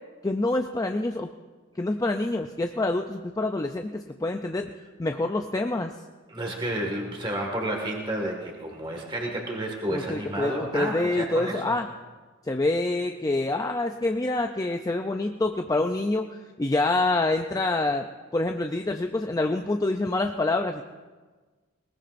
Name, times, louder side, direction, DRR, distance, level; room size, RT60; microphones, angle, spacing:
voice 1, 0.2-1.3 1.8-4.7 5.0-5.9 9.9-11.9 12.4-16.3 16.6-18.1 18.3-20.8, left 2 dB, 15° left, 4 dB, 0.4 m, -26 dB
voice 2, 6.3-11.8, right 1 dB, 25° right, 0 dB, 1.8 m, -31 dB
20.5 x 19.0 x 2.6 m, 1.4 s
head